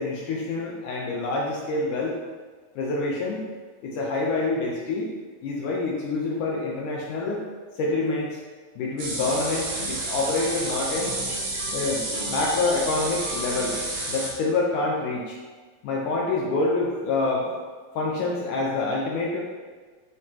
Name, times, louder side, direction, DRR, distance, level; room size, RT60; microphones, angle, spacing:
voice 1, 0.0-2.2 2.8-3.5 3.8-5.1 5.4-7.4 7.8-8.4 8.8-11.1 11.7-13.8 14.1-15.4 15.8-17.5 18.0-19.4, left 3 dB, 70° left, -3 dB, 2.2 m, -26 dB
sound 1, 9.0-14.3, right 2 dB, 85° right, 3.9 m, -30 dB
9.8 x 5.8 x 3.0 m, 1.5 s
omnidirectional pair, 4.3 m